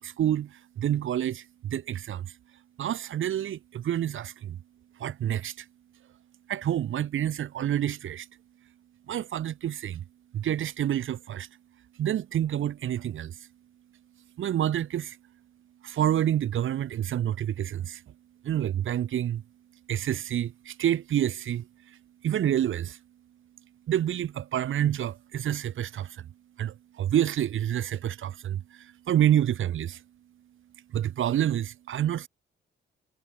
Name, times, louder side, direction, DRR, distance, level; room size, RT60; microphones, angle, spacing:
voice 1, 0.0-2.3 2.8-4.6 5.0-5.6 6.5-8.3 9.1-10.0 10.3-11.5 12.0-13.4 14.4-15.2 15.8-18.0 18.4-19.4 19.9-22.0 22.2-23.0 23.9-26.3 26.6-30.0 30.9-32.3, right 11 dB, 90° right, 5.9 m, -28 dB
wide cardioid pair, 180°, 20 cm